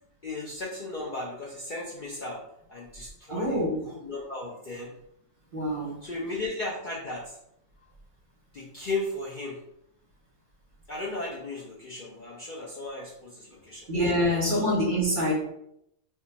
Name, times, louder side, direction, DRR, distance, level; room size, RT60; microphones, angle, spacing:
voice 1, 0.2-2.4 2.7-4.9 6.0-7.4 8.5-9.6 10.9-13.9 14.2-14.7, left 2 dB, 55° left, -5 dB, 0.5 m, -36 dB
voice 2, 3.3-3.8 5.5-6.0 13.9-15.3, equal, 45° right, -3 dB, 0.7 m, -25 dB
2.4 x 2.2 x 3.8 m, 0.77 s
omnidirectional pair, 1.3 m